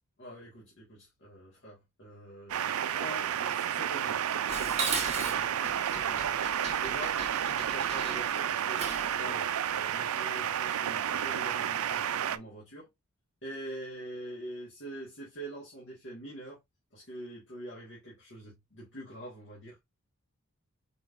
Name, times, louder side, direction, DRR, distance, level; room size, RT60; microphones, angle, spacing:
voice 1, 0.2-4.2 4.5-6.4 6.8-7.2 7.5-8.8 9.1-12.9 13.4-16.6 16.9-19.8, right 1 dB, 55° left, 1.9 m, -45 dB
sound 1, 2.5-12.4, right 9 dB, 70° right, 0.4 m, -31 dB
Dishes pots and pans, 4.5-9.2, right 4 dB, 30° right, 1.2 m, -37 dB
4.9 x 3.6 x 2.5 m
head